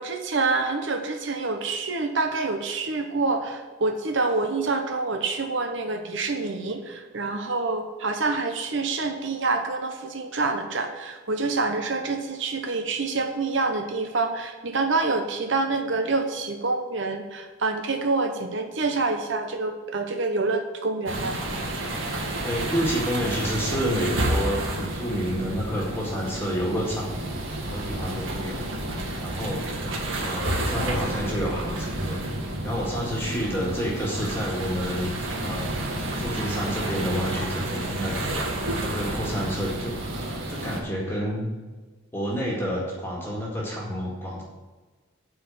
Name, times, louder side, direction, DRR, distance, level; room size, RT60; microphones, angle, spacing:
voice 1, 0.0-21.4, right 3 dB, 65° right, 5 dB, 0.9 m, -27 dB
sound 1, 21.1-40.8, right 1 dB, 80° right, 1.8 m, -30 dB
voice 2, 22.4-27.3 27.6-28.6 29.2-29.7 30.2-32.2 32.6-35.1 35.4-35.8 36.2-39.9 40.5-41.5 42.1-44.4, equal, 10° left, -4 dB, 1.9 m, -29 dB
9.1 x 4.8 x 7.6 m, 1.3 s
head